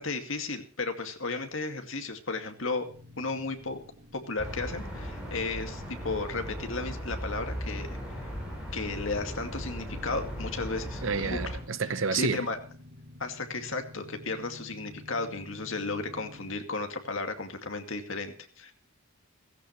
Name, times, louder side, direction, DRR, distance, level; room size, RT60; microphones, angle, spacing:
voice 1, 0.0-2.9 3.2-3.8 4.1-8.3 8.7-11.6 12.1-12.6 13.2-18.7, left 3 dB, 65° left, 2.3 m, -34 dB
sound 1, 2.9-16.6, left 1 dB, 85° right, 4.4 m, -51 dB
sound 2, 4.4-11.6, equal, 5° right, 7.4 m, -37 dB
voice 2, 11.0-12.4, right 5 dB, 65° right, 0.8 m, -29 dB
16.5 x 16.0 x 3.2 m
head